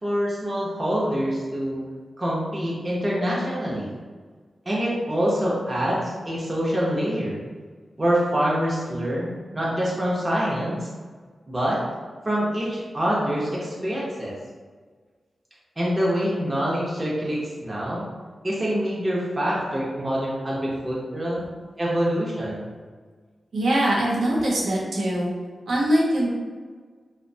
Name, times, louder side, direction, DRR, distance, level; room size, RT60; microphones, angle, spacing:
voice 1, 0.0-1.8 2.2-3.9 4.7-7.4 8.0-10.9 11.5-11.8 12.2-14.3 15.8-18.0 18.4-21.4 21.8-22.7, equal, 25° right, -6 dB, 0.6 m, -25 dB
voice 2, 23.5-25.3 25.7-26.3, right 1 dB, 90° right, -5 dB, 0.7 m, -22 dB
2.7 x 2.1 x 2.6 m, 1.5 s
wide cardioid pair, 95°, 0 cm